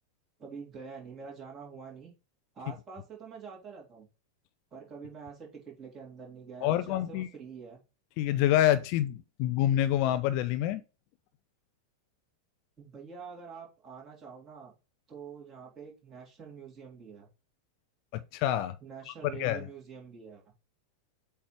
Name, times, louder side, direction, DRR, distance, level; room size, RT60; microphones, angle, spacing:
voice 1, 0.4-2.1 2.5-4.1 4.7-7.8 12.8-14.7 15.1-17.3 18.8-20.4, right 6 dB, 25° right, 3.5 m, -46 dB
voice 2, 6.6-7.3 8.2-10.8 18.1-18.7 19.1-19.2 19.4-19.7, left 12 dB, 45° left, 0.5 m, -27 dB
7.8 x 3.4 x 4.5 m
figure-of-eight pair, 90°, 0 cm